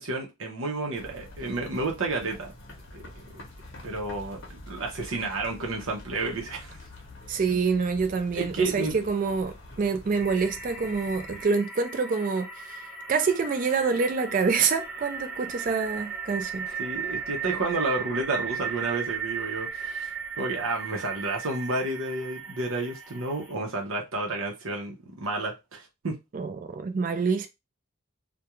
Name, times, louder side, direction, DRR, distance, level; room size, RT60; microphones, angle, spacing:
voice 1, 0.0-2.5 2.9-3.0 3.8-4.4 4.7-6.8 8.3-8.9 16.8-20.1 20.4-26.1, right 2 dB, 85° right, 0.6 m, -31 dB
sound 1, 0.9-11.5, left 1 dB, 65° left, 0.7 m, -46 dB
voice 2, 7.3-12.5 13.1-16.7 26.3-27.5, right 5 dB, 40° right, 0.3 m, -26 dB
sound 2, 10.1-23.5, right 6 dB, 10° right, 0.7 m, -36 dB
2.3 x 2.2 x 2.9 m
head